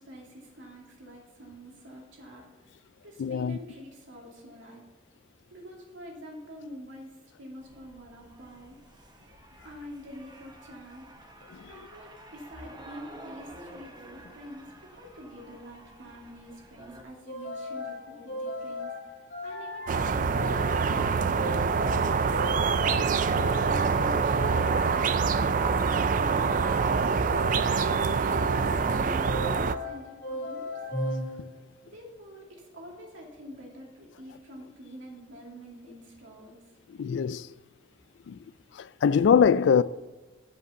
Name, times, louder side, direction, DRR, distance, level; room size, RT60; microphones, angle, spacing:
voice 1, 0.0-2.7 3.0-4.8 5.5-8.8 9.6-11.1 11.6-19.0 19.4-23.0 23.5-24.8 25.1-27.7 28.3-30.7 31.9-36.6, equal, 90° right, 2.5 m, -46 dB
voice 2, 3.2-3.6 11.5-11.7 37.0-37.5 38.3-38.4 38.8-39.8, left 7 dB, 65° left, 0.3 m, -23 dB
sound 1, 7.6-17.0, right 1 dB, 20° right, 1.0 m, -50 dB
sound 2, 17.3-31.8, left 1 dB, 45° left, 3.1 m, -37 dB
sound 3, 19.9-29.7, right 5 dB, 45° right, 0.4 m, -25 dB
7.6 x 5.5 x 6.8 m
head